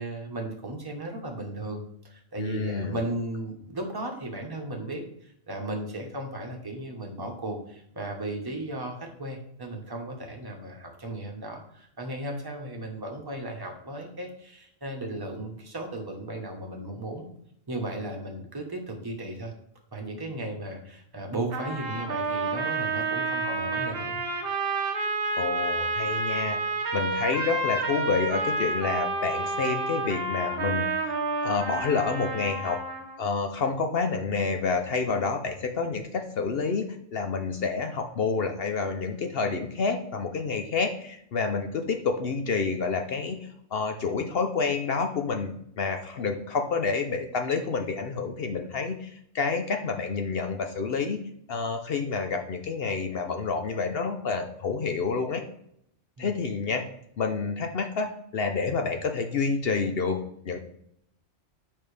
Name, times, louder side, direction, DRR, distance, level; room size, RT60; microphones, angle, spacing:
voice 1, 0.0-17.2 17.7-19.5 19.9-24.2 56.2-56.4, right 1 dB, 20° right, 1 dB, 1.1 m, -35 dB
voice 2, 2.4-2.9 25.4-26.6 26.9-31.2 31.4-32.8 33.2-51.2 51.5-55.4 56.2-56.8 57.2-60.6, left 4 dB, 55° left, 5 dB, 0.8 m, -29 dB
sound 1, 21.5-33.2, right 3 dB, 50° right, 1.0 m, -29 dB
7.1 x 5.2 x 3.3 m, 0.71 s
omnidirectional pair, 1.4 m